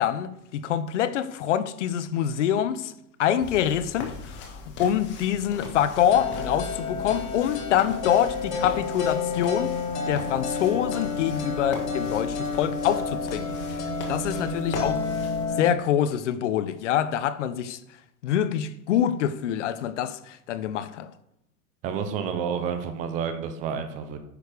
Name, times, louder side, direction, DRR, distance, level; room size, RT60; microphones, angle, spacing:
voice 1, 0.0-2.9 3.2-9.7 10.1-13.8 14.1-15.0 15.6-17.8 18.2-21.1, left 10 dB, 50° left, 0.8 m, -25 dB
sound 1, 3.4-15.5, left 4 dB, 25° left, 1.5 m, -39 dB
sound 2, 6.1-15.7, left 4 dB, 85° left, 2.8 m, -30 dB
voice 2, 21.8-24.2, right 7 dB, 15° right, 0.6 m, -30 dB
10.0 x 6.5 x 5.1 m
hypercardioid pair, 150°, 47 cm